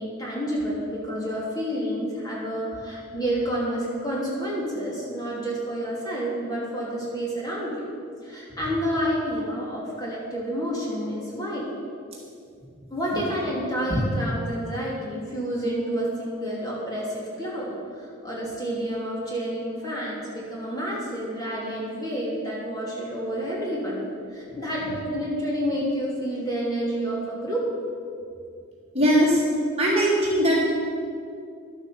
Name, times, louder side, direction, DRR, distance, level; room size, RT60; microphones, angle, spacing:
voice 1, 0.0-7.8 8.2-11.7 12.9-24.0 24.3-27.7, equal, 15° left, -5 dB, 2.9 m, -29 dB
voice 2, 28.9-29.4 29.8-30.6, equal, 30° right, -4 dB, 2.1 m, -20 dB
11.5 x 8.9 x 7.1 m, 2.3 s
head